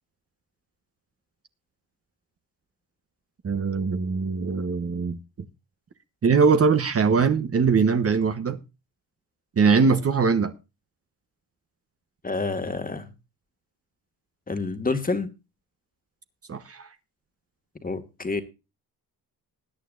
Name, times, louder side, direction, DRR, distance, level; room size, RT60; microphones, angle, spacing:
voice 1, 3.4-5.2 6.2-8.6 9.6-10.5 16.5-16.9, right 5 dB, 35° right, 1.1 m, -21 dB
voice 2, 12.2-13.1 14.5-15.3 17.8-18.4, left 3 dB, 20° left, 1.8 m, -28 dB
20.0 x 9.3 x 2.5 m
cardioid pair, 95°, 38 cm